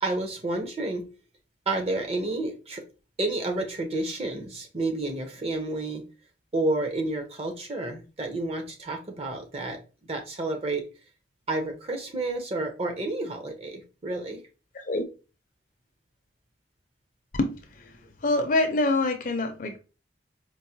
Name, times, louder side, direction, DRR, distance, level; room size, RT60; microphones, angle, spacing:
voice 1, 0.0-1.0 1.7-2.8 3.2-6.0 6.5-9.8 10.1-10.8 11.5-14.4, right 2 dB, 35° right, 0.7 m, -30 dB
voice 2, 17.4-17.9 18.2-19.8, left 2 dB, 45° left, 0.5 m, -25 dB
4.5 x 2.1 x 2.7 m
head